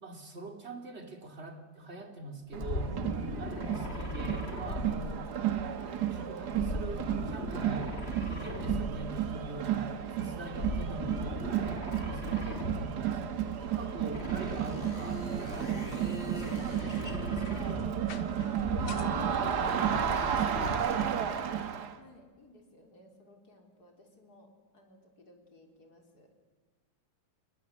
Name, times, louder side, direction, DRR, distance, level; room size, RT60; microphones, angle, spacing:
voice 1, 0.0-2.9 3.4-5.2 6.1-8.0 8.3-9.9 10.2-13.2 13.7-17.9 19.1-20.9, right 2 dB, 35° right, 4 dB, 2.9 m, -44 dB
Crowd, 2.5-22.0, right 9 dB, 60° right, 1.7 m, -33 dB
sound 1, 2.6-5.6 6.5-9.2 10.5-13.1 14.1-18.0 18.5-21.0, left 1 dB, 30° left, 3.1 m, -39 dB
voice 2, 12.2-12.9 14.2-14.4 17.0-17.6 18.5-18.8 21.2-26.5, left 1 dB, 55° left, 2 dB, 4.2 m, -58 dB
sound 2, 15.1-21.1, left 7 dB, 80° left, 1.8 m, -46 dB
28.0 x 20.5 x 7.9 m, 1.4 s
omnidirectional pair, 2.1 m